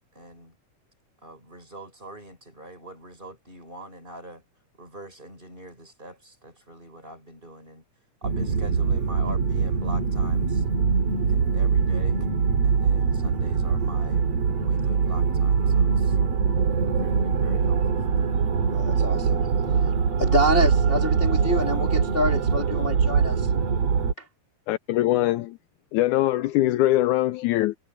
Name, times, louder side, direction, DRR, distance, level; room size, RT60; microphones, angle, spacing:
voice 1, 0.1-0.6 1.2-4.4 4.8-7.8 8.2-10.6 11.3-12.3 12.6-14.2 14.6-16.2 17.0-18.3, right 1 dB, 15° right, 6.3 m, -43 dB
sound 1, 8.2-24.1, right 6 dB, 55° right, 3.0 m, -23 dB
voice 2, 18.7-19.5 20.2-23.5, equal, 15° left, 3.1 m, -26 dB
voice 3, 24.7-25.6 25.9-27.8, left 15 dB, 80° left, 1.9 m, -22 dB
omnidirectional pair, 3.7 m